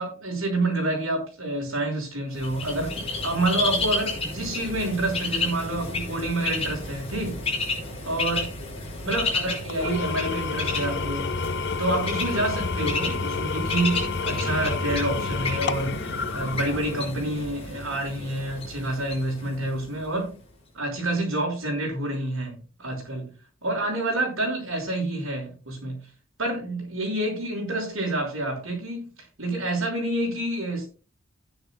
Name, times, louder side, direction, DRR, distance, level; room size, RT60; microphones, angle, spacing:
voice 1, 0.0-7.4 8.0-8.5 9.0-11.3 11.8-16.0 16.3-20.4 20.7-23.3 23.6-26.0 26.4-30.9, right 1 dB, 80° right, 5.8 m, -28 dB
Bird, 2.4-20.1, left 3 dB, 30° left, 5.6 m, -32 dB
Engine / Tools, 9.7-17.2, left 5 dB, 55° left, 0.5 m, -30 dB
16.0 x 10.0 x 2.3 m
head